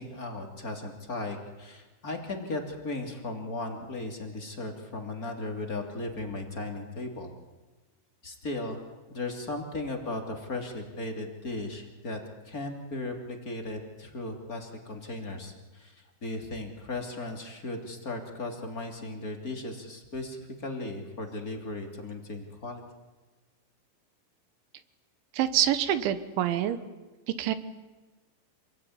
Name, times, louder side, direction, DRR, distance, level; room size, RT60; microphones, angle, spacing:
voice 1, 0.0-7.3 8.2-8.8 9.1-12.2 12.4-15.9 16.2-22.8, left 2 dB, 25° left, 3 dB, 2.4 m, -36 dB
voice 2, 25.3-26.8 27.3-27.5, right 11 dB, 75° right, 12 dB, 3.5 m, -26 dB
27.5 x 21.5 x 9.7 m, 1.2 s
omnidirectional pair, 5.6 m